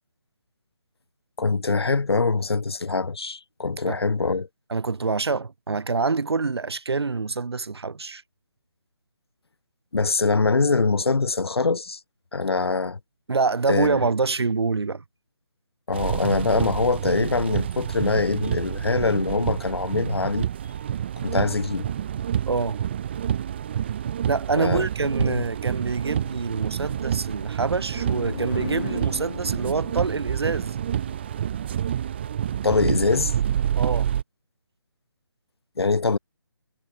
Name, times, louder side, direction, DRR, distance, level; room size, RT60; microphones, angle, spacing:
voice 1, 1.4-4.5 9.9-12.0 12.3-13.0 13.7-14.0 15.9-20.5 21.2-21.9 24.6-24.9 25.2-25.4 32.6-33.3 35.8-36.2, left 4 dB, 70° left, 5.6 m, -23 dB
voice 2, 4.7-8.2 13.3-15.0 22.5-22.8 24.3-30.8 33.8-34.1, right 4 dB, 75° right, 1.5 m, -26 dB
sound 1, 15.9-34.2, right 9 dB, 25° right, 3.1 m, -28 dB
sound 2, 27.9-31.6, left 5 dB, 45° left, 7.5 m, -37 dB
hypercardioid pair, 170°, 14 cm